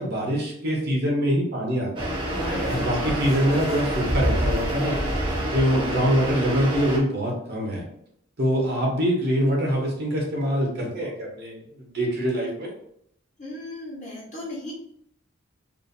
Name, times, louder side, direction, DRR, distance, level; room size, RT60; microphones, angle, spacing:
voice 1, 0.0-2.1 2.6-5.0 5.5-7.8 8.4-12.7, equal, 50° right, -2 dB, 0.8 m, -24 dB
sound 1, 2.0-7.0, right 1 dB, 25° right, 0.6 m, -29 dB
sound 2, 2.3-6.1, equal, 10° left, 0.8 m, -29 dB
voice 2, 2.9-3.2 5.7-6.0 13.4-14.7, left 2 dB, 35° left, -6 dB, 0.9 m, -37 dB
2.6 x 2.5 x 2.5 m, 0.70 s
head